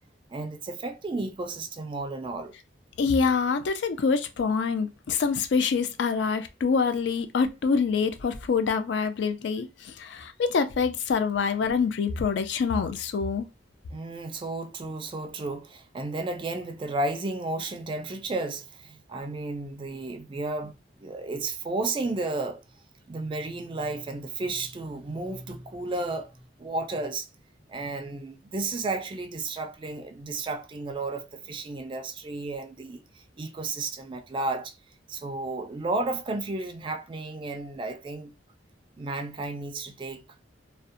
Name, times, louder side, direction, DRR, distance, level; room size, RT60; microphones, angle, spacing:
voice 1, 0.3-2.5 13.9-20.7 21.0-22.6 23.1-26.3 26.6-27.3 27.7-34.7 35.1-38.3 39.0-40.2, right 2 dB, 25° right, 0.3 m, -33 dB
voice 2, 3.0-13.5, left 5 dB, 65° left, 0.3 m, -26 dB
2.5 x 2.1 x 2.5 m
head